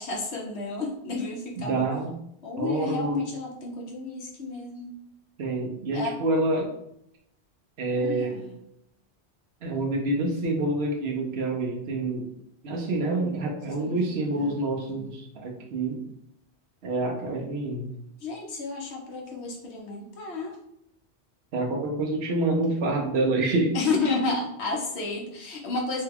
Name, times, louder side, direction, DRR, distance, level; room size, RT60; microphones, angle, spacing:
voice 1, 0.0-1.9 2.4-4.9 5.9-6.2 7.9-8.6 13.8-15.1 18.2-20.6 23.7-26.0, left 3 dB, 75° left, 0 dB, 1.1 m, -32 dB
voice 2, 1.6-2.1 2.6-3.2 5.4-6.7 7.8-8.4 9.6-12.3 12.6-16.0 16.8-17.9 21.5-23.8, right 2 dB, 70° right, 1 dB, 1.0 m, -27 dB
3.2 x 2.2 x 3.4 m, 0.75 s
omnidirectional pair, 1.1 m